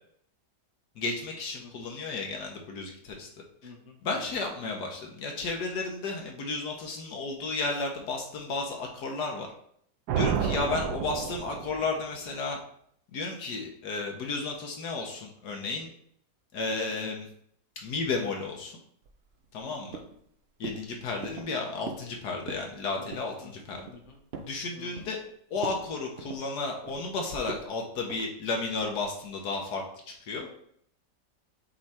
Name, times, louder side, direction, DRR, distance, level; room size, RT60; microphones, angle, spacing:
voice 1, 1.0-3.3 4.0-9.5 10.1-12.6 13.1-15.9 16.5-17.3 17.8-18.7 19.5-20.0 20.6-23.9 24.4-25.2 25.5-29.8 30.3-30.5, left 3 dB, 75° left, 1 dB, 1.5 m, -33 dB
voice 2, 1.6-2.0 3.6-4.2 10.7-10.8 19.6-20.0 23.0-23.1 23.4-23.5 23.9-24.2 24.7-25.0, left 5 dB, 50° left, 0 dB, 1.3 m, -49 dB
sound 1, 10.1-12.0, right 7 dB, 75° right, 1.2 m, -30 dB
sound 2, 19.0-19.7 19.9-20.3 20.6-20.9 21.2-21.5 21.9-22.1 22.4-22.7 23.1-23.3 23.7-24.6 25.0-25.3 25.6-25.8 26.2-27.1 27.5-27.7 28.1-28.3 28.7-29.0, right 4 dB, 55° right, 0.7 m, -41 dB
7.2 x 3.3 x 4.3 m, 0.66 s
omnidirectional pair, 1.8 m